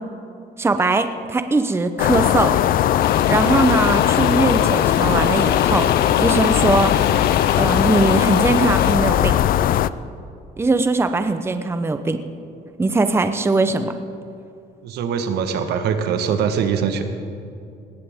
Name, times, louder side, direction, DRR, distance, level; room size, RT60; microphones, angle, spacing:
voice 1, 0.6-2.5 3.3-5.9 6.2-7.0 7.6-9.4 10.6-12.2 12.8-13.9, right 3 dB, 15° right, 9 dB, 0.7 m, -20 dB
sound 1, 2.0-9.9, left 11 dB, 60° left, 0.4 m, -18 dB
sound 2, 3.0-9.0, left 8 dB, 75° left, 1.3 m, -32 dB
voice 2, 14.8-17.0, right 7 dB, 75° right, 7 dB, 1.3 m, -22 dB
19.0 x 16.0 x 3.6 m, 2.6 s
cardioid pair, 110°, 17 cm